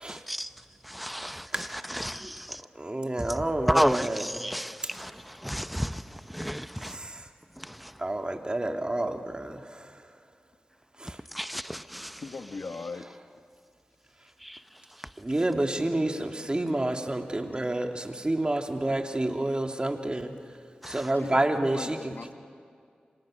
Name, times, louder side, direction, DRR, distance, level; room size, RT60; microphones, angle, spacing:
voice 1, 0.1-2.6 3.2-7.1 7.5-8.0 11.0-12.2 14.4-15.1 20.8-21.1, equal, ahead, 1.0 m, -32 dB
voice 2, 1.5-1.8 2.8-4.3 6.9-7.3 8.0-10.0 11.0-11.2 15.2-20.3 20.9-22.1, right 1 dB, 30° right, 2.7 m, -29 dB
voice 3, 12.2-13.1 21.1-22.3, left 4 dB, 70° left, 1.4 m, -39 dB
28.5 x 26.0 x 6.6 m
cardioid pair, 40°, 3 cm